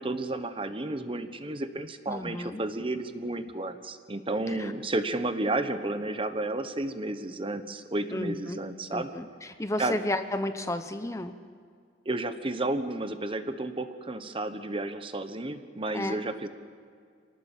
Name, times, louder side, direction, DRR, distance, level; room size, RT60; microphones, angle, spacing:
voice 1, 0.0-9.1 9.8-10.0 12.0-16.5, right 2 dB, 30° right, 9 dB, 1.2 m, -32 dB
voice 2, 2.1-2.6 4.5-4.7 8.1-8.6 8.9-9.3 9.6-11.3 15.9-16.2, left 1 dB, 15° left, 9 dB, 0.8 m, -32 dB
26.0 x 18.5 x 7.4 m, 2.2 s
head